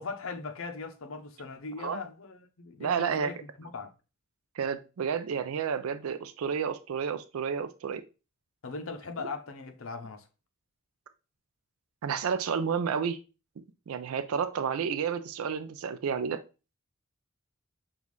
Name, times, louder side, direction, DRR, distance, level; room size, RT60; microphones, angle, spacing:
voice 1, 0.0-3.9 8.6-10.2, left 4 dB, 65° left, 0.6 m, -39 dB
voice 2, 2.8-3.3 4.6-8.0 9.2-9.3 12.0-13.2 13.9-16.4, right 6 dB, 85° right, 0.4 m, -31 dB
5.4 x 2.4 x 3.1 m
head